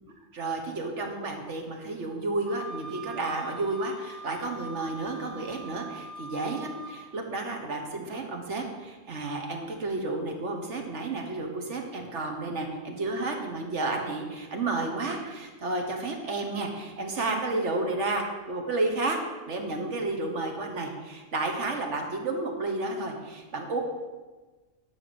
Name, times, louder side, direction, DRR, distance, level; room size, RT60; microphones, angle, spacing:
voice 1, 0.3-19.2 19.5-23.8, right 2 dB, 70° right, 3 dB, 1.6 m, -31 dB
Wind instrument woodwind instrument, 2.5-7.0, right 2 dB, 45° right, 1.5 m, -43 dB
11.0 x 4.9 x 6.9 m, 1.3 s
omnidirectional pair, 1.3 m